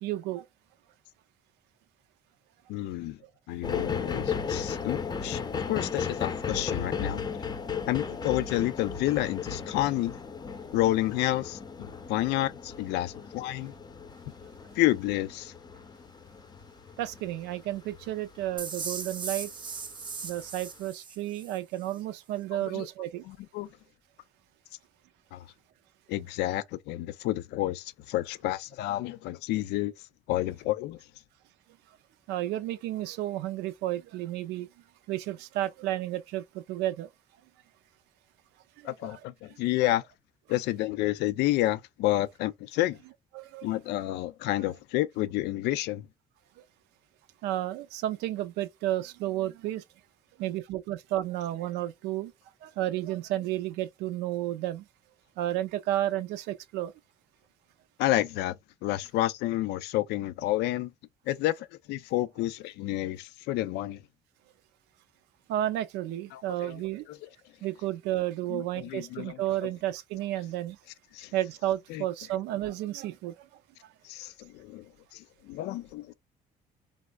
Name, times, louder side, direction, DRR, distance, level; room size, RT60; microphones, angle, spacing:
voice 1, 0.0-0.5 17.0-19.5 20.2-23.2 32.3-34.7 35.1-37.1 38.8-39.2 43.3-43.8 47.4-49.8 50.4-52.3 52.6-54.8 55.4-56.9 65.5-67.1 67.6-70.8 71.3-73.5, right 14 dB, 90° right, 0.4 m, -32 dB
voice 2, 2.7-3.2 3.5-7.2 7.9-10.1 10.7-13.7 14.8-15.5 22.6-22.9 23.2-23.7 25.3-25.4 26.1-29.9 30.3-31.0 38.8-40.0 40.5-43.0 43.6-46.1 58.0-58.6 58.8-60.9 61.3-64.0 66.3-66.8 67.1-67.2 68.5-69.4 71.1-71.3 71.9-72.0 74.0-74.8 75.1-76.1, left 15 dB, 85° left, 0.4 m, -30 dB
sound 1, 3.6-19.2 19.8-19.9, left 6 dB, 25° left, 0.6 m, -36 dB
sound 2, 18.6-21.6, right 5 dB, 30° right, 0.6 m, -38 dB
3.5 x 2.0 x 2.2 m
cardioid pair, 110°, 17 cm